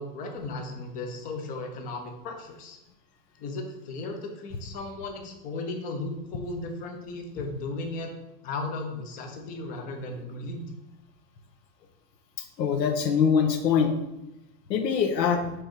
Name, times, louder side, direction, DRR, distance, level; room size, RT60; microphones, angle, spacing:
voice 1, 0.0-2.8 3.4-8.1 8.4-10.7, left 2 dB, 20° left, 4 dB, 0.5 m, -36 dB
voice 2, 12.4-13.9 14.7-15.5, left 7 dB, 85° left, 5 dB, 1.1 m, -23 dB
5.4 x 3.4 x 5.7 m, 0.93 s
supercardioid pair, 145°, 49 cm